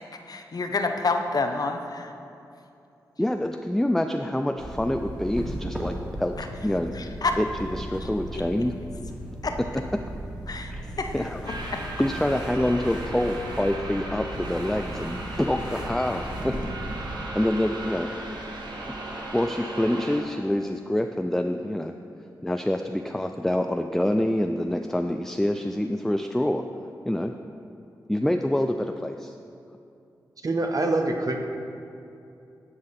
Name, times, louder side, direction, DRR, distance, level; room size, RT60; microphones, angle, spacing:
voice 1, 0.3-2.1 6.9-7.4 8.3-8.4 9.4-9.5 10.5-10.7 11.0-11.8, left 3 dB, 50° left, 5 dB, 0.7 m, -28 dB
voice 2, 3.2-6.9 7.4-8.7 9.6-9.7 10.1-10.2 10.7-11.4 11.7-16.6 17.3-18.1 19.1-21.9 22.4-26.6 27.1-27.3 28.1-29.3, left 1 dB, 5° left, 6 dB, 0.4 m, -26 dB
sound 1, 4.6-17.2, right 1 dB, 10° right, 1.8 m, -37 dB
sound 2, 11.5-20.2, right 1 dB, 65° right, 1.2 m, -37 dB
voice 3, 30.4-31.5, right 2 dB, 45° right, 4 dB, 0.9 m, -25 dB
11.5 x 4.8 x 4.2 m, 2.7 s
supercardioid pair, 45°, 8 cm